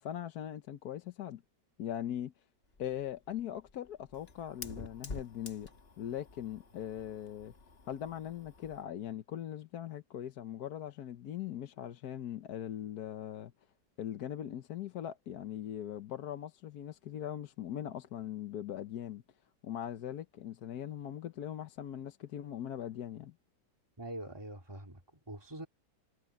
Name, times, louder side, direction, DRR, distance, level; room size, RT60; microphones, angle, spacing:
voice 1, 0.0-1.4 1.8-2.3 2.8-5.7 6.0-7.5 7.9-13.5 14.0-19.2 19.6-23.3, left 10 dB, 80° left, 1.4 m, -40 dB
Fire, 2.6-8.9, left 3 dB, 40° left, 2.1 m, -49 dB
voice 2, 24.0-25.7, right 1 dB, 15° right, 2.9 m, -44 dB
omnidirectional pair, 1.7 m